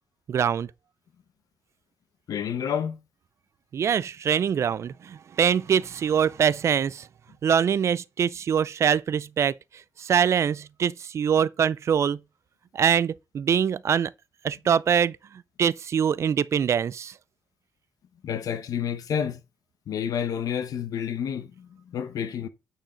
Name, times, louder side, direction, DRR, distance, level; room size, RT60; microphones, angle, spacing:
voice 1, 0.3-0.7 3.7-7.1 7.4-9.5 10.0-12.2 12.7-14.1 14.4-15.2 15.6-17.1, right 8 dB, 50° right, 0.4 m, -23 dB
voice 2, 2.3-3.0 18.2-19.4 19.9-22.5, left 8 dB, 75° left, 0.9 m, -29 dB
8.9 x 4.5 x 3.8 m
wide cardioid pair, 155°, 6 cm